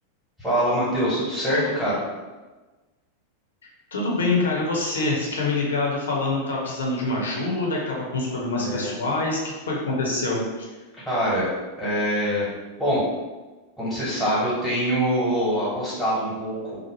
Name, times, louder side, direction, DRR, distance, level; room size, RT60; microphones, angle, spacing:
voice 1, 0.4-2.0 8.5-8.9 11.0-11.5 11.8-12.5 12.8-13.0 13.8-16.8, equal, 5° right, -10 dB, 1.2 m, -24 dB
voice 2, 3.9-10.7, left 2 dB, 65° left, -2 dB, 0.7 m, -25 dB
2.9 x 2.0 x 3.0 m, 1.2 s
figure-of-eight pair, 90°, 0 cm